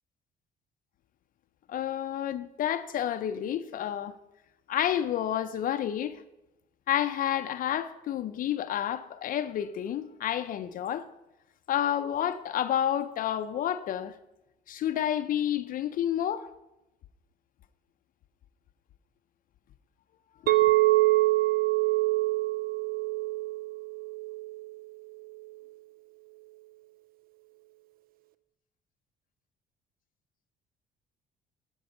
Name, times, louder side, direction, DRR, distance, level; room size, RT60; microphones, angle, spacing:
voice 1, 1.7-4.1 4.7-6.2 6.9-11.1 11.7-14.1 14.7-16.5 20.4-20.7, left 10 dB, 55° left, 0.5 m, -30 dB
Chink clink, 20.5-24.7, right 20 dB, 60° right, 0.4 m, -25 dB
11.5 x 5.4 x 5.4 m
cardioid pair, 110°, 17 cm